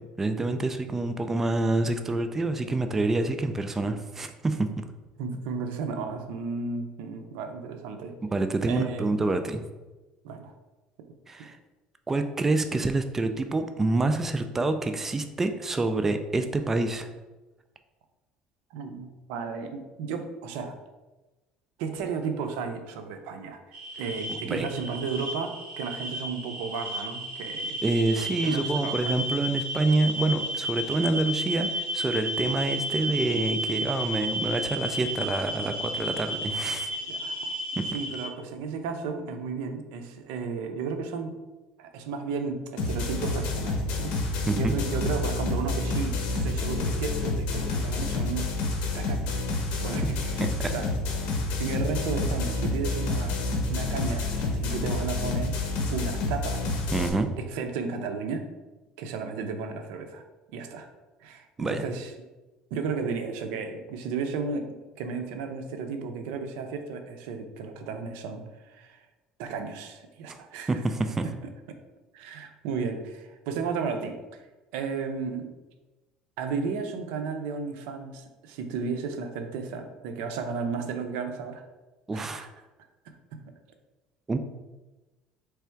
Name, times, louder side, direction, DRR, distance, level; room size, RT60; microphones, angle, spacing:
voice 1, 0.2-4.8 8.3-9.6 11.3-11.6 12.1-17.1 24.3-24.7 27.8-36.9 37.8-37.9 44.5-44.8 50.4-50.7 56.9-57.3 61.6-61.8 70.7-71.3 82.1-82.5 84.3-84.4, right 2 dB, 15° right, 7 dB, 0.3 m, -27 dB
voice 2, 5.2-8.2 8.7-9.2 10.2-10.5 11.4-11.5 18.7-20.7 21.8-27.8 28.4-29.1 37.1-37.4 37.9-41.4 41.8-48.5 48.9-49.4 49.8-50.9 51.1-53.4 53.7-55.6 55.9-56.6 57.4-58.5 59.0-60.2 60.5-60.9 61.2-62.1 62.7-69.1 69.4-70.8 71.2-71.5 72.1-74.4 74.7-75.5 76.4-81.6 82.1-82.5 83.1-83.5, right 5 dB, 80° right, 6 dB, 0.6 m, -34 dB
sound 1, 23.7-38.3, equal, 55° right, 1.0 m, -32 dB
sound 2, 42.8-57.1, left 2 dB, 60° left, 0.9 m, -29 dB
3.4 x 3.4 x 4.5 m, 1.1 s
cardioid pair, 135°, 2 cm